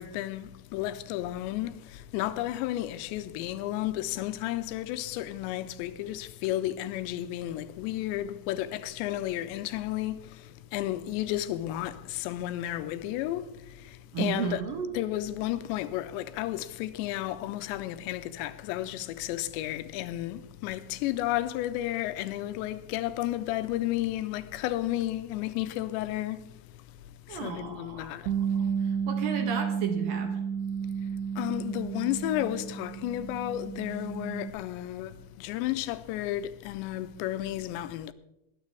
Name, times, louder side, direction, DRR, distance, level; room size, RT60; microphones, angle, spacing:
voice 1, 0.0-14.6 14.9-26.8 27.3-28.3 31.4-38.1, left 14 dB, 90° left, 2.9 m, -32 dB
voice 2, 14.1-14.9 27.3-28.2 28.6-30.4, right 7 dB, 65° right, 2.4 m, -34 dB
Bass guitar, 28.3-34.5, right 7 dB, 90° right, 3.1 m, -32 dB
21.5 x 9.7 x 3.4 m
omnidirectional pair, 5.0 m